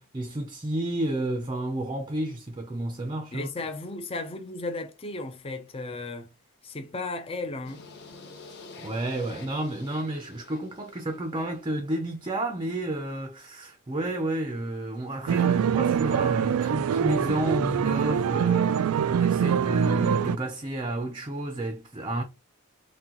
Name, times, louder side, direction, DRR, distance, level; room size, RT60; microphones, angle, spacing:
voice 1, 0.0-3.5 8.8-22.2, right 1 dB, 20° right, 0.5 m, -31 dB
voice 2, 3.3-6.3 6.6-7.9, left 2 dB, 25° left, 0.5 m, -35 dB
sound 1, 7.6-11.7, left 3 dB, 50° left, 1.2 m, -48 dB
sound 2, 15.3-20.4, right 8 dB, 75° right, 0.3 m, -24 dB
6.0 x 2.3 x 2.9 m
head